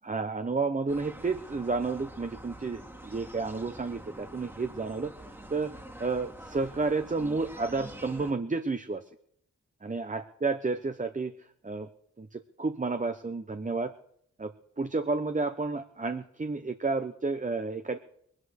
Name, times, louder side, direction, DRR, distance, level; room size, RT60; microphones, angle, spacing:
voice 1, 0.0-5.1 5.5-9.0 9.8-11.9 12.2-13.9 14.4-14.5 14.8-18.0, right 3 dB, 25° right, 8 dB, 0.9 m, -31 dB
sound 1, 0.9-8.3, right 1 dB, 5° right, 2.0 m, -46 dB
20.0 x 9.9 x 6.5 m, 0.68 s
cardioid pair, 60°, 30 cm